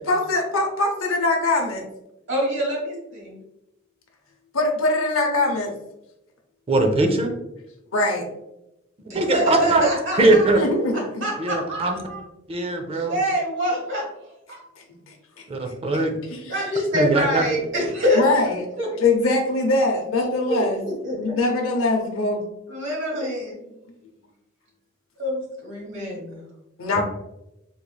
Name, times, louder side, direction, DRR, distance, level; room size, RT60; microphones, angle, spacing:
voice 1, 0.0-1.8 4.5-5.7 7.9-8.2 10.2-11.2 15.1-16.0 16.3-16.5 18.2-18.6 19.0-20.8 21.2-22.4 26.8-27.0, left 2 dB, 70° left, 1 dB, 0.6 m, -23 dB
voice 2, 2.3-3.4 9.0-10.6 10.9-12.2 12.9-14.6 16.5-18.2 18.8-18.9 20.5-21.3 22.7-23.6 25.2-26.4, equal, 65° right, -2 dB, 1.4 m, -26 dB
voice 3, 6.7-7.3 9.1-9.9 10.2-10.6 11.4-12.0 12.5-13.2 15.5-16.1 16.9-17.5 26.9-27.0, right 2 dB, 30° right, 4 dB, 0.5 m, -20 dB
3.6 x 3.2 x 2.2 m, 0.89 s
head